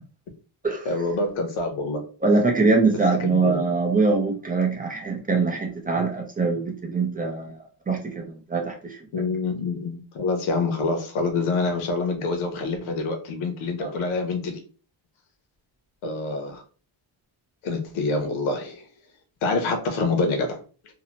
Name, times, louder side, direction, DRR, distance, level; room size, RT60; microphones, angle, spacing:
voice 1, 0.8-2.0 3.2-3.8 9.1-14.6 16.0-16.6 17.6-18.8 19.4-20.6, left 3 dB, 90° left, 5 dB, 0.9 m, -26 dB
voice 2, 2.2-7.6 7.9-8.2 8.5-9.0 13.8-13.9, right 4 dB, 20° right, 1 dB, 0.4 m, -23 dB
2.8 x 2.0 x 2.8 m, 0.38 s
cardioid pair, 150°, 47 cm